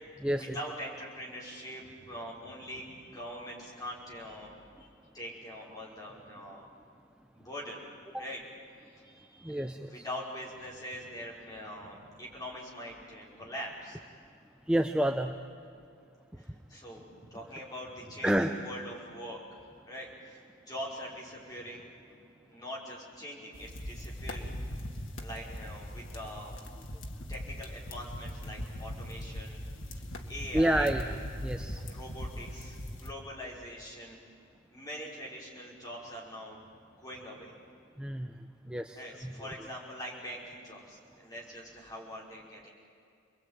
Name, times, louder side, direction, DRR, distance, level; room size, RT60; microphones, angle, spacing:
voice 1, 0.3-6.7 7.3-7.9 8.2-8.4 8.8-14.0 16.4-19.4 19.8-21.9 22.5-24.6 25.2-26.5 27.3-30.9 31.8-34.2 34.7-36.7 37.0-37.5 38.9-42.7, equal, 20° left, -4 dB, 5.5 m, -43 dB
voice 2, 9.4-10.0 14.7-15.4 18.2-18.5 30.5-31.1 31.4-31.8 38.0-38.3 38.7-39.0 39.2-39.3, right 1 dB, 5° right, 4 dB, 0.7 m, -28 dB
sound 1, 23.5-33.1, equal, 85° left, 2.1 m, -40 dB
29.0 x 21.5 x 9.2 m, 2.4 s
head